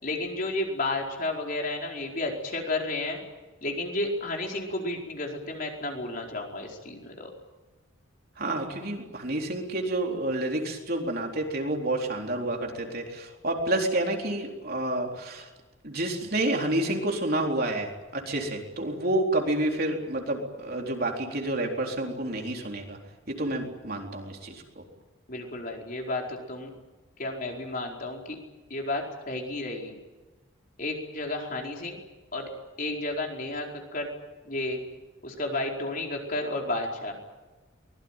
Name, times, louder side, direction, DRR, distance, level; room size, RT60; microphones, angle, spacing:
voice 1, 0.0-3.2 3.6-7.3 25.3-26.7 27.2-28.4 28.7-30.0 30.8-32.0 32.3-32.5 32.8-34.1 34.5-34.8 35.2-37.2, left 2 dB, 40° left, 0 dB, 4.8 m, -32 dB
voice 2, 8.4-15.5 15.8-23.0 23.3-24.8, right 1 dB, 45° right, 1 dB, 4.0 m, -29 dB
24.0 x 21.0 x 9.1 m, 1.2 s
head